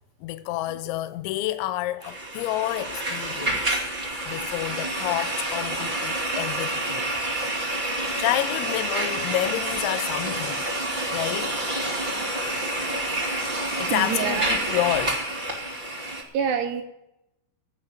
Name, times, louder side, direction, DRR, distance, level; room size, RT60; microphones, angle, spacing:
voice 1, 0.2-3.8 4.3-7.1 8.2-10.6 11.1-11.5 13.8-15.2, left 15 dB, 90° left, 3.0 m, -29 dB
sound 1, 2.0-16.2, right 1 dB, 55° right, 0.5 m, -28 dB
voice 2, 13.9-14.9 15.5-15.7 16.1-16.8, right 8 dB, 75° right, 2.7 m, -29 dB
16.5 x 6.3 x 9.0 m
omnidirectional pair, 5.2 m